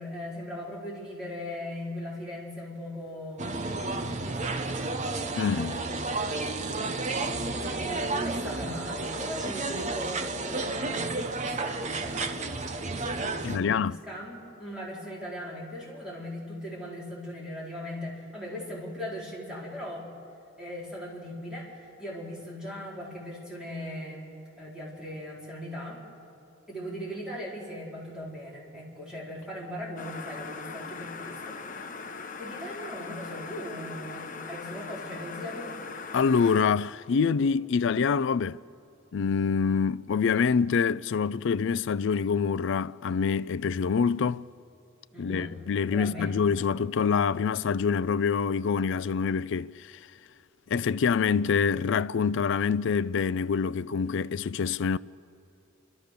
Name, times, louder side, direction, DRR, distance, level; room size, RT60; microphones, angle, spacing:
voice 1, 0.0-6.7 7.5-11.1 11.4-12.4 13.3-20.1 20.6-24.3 24.6-26.0 26.7-32.1 32.4-35.8 45.1-45.5 45.9-46.3, equal, 5° right, 4.3 m, -39 dB
sound 1, 3.4-13.6, right 3 dB, 35° right, 0.7 m, -32 dB
voice 2, 5.4-5.8 13.4-14.0 36.1-38.6 39.1-44.4 45.2-49.9 50.7-55.0, left 6 dB, 65° left, 0.4 m, -26 dB
sound 2, 30.0-36.6, left 4 dB, 40° left, 1.0 m, -40 dB
29.0 x 13.5 x 6.7 m
head